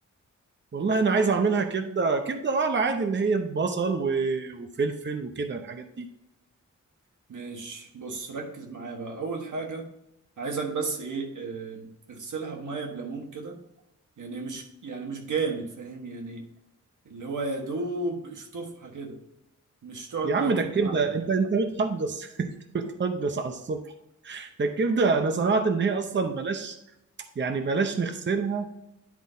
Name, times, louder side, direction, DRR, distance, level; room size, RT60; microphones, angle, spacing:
voice 1, 0.7-6.1 20.2-23.9 24.2-26.8 27.4-28.7, right 4 dB, 35° right, 7 dB, 0.7 m, -26 dB
voice 2, 7.3-9.9 10.4-13.6 14.2-16.5 17.0-19.2 19.8-21.0, right 4 dB, 75° right, 2 dB, 1.5 m, -34 dB
10.5 x 4.0 x 4.0 m, 0.84 s
wide cardioid pair, 140°, 30 cm